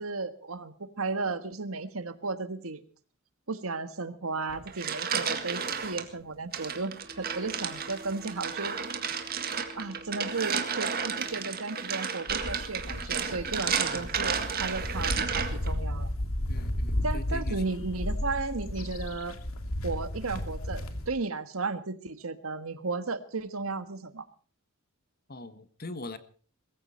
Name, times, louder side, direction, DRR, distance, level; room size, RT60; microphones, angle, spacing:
voice 1, 0.0-2.8 3.5-8.7 9.8-16.1 17.0-19.4 19.8-24.2, right 3 dB, 80° right, 11 dB, 1.5 m, -34 dB
sound 1, 4.5-6.0 6.5-15.7, right 6 dB, 45° right, 1.9 m, -32 dB
sound 2, 7.0-11.8, equal, 20° right, 5.4 m, -50 dB
sound 3, 12.3-21.1, left 1 dB, 75° left, 2.4 m, -34 dB
voice 2, 13.9-14.4 16.5-17.9 25.3-26.2, left 2 dB, 45° left, 12 dB, 1.4 m, -42 dB
22.0 x 15.0 x 4.4 m, 0.42 s
head